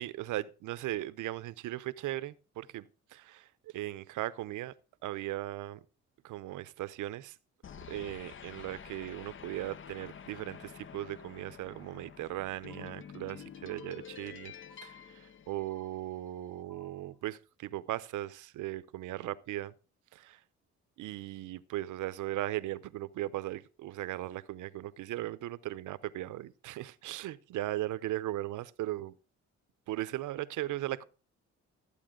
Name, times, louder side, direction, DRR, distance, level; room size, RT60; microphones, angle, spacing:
voice 1, 0.0-3.5 3.7-4.7 5.0-5.8 6.2-7.3 7.9-14.5 14.8-19.7 20.1-20.4 21.0-29.1 29.9-31.1, right 15 dB, 80° right, 0.7 m, -38 dB
sound 1, 7.6-16.2, left 8 dB, 40° left, 0.7 m, -49 dB
sound 2, 12.7-13.4 13.7-14.4 14.7-15.4 15.7-16.4 16.7-17.4, left 1 dB, 85° left, 1.3 m, -62 dB
13.5 x 8.5 x 3.7 m
cardioid pair, 90°, 30 cm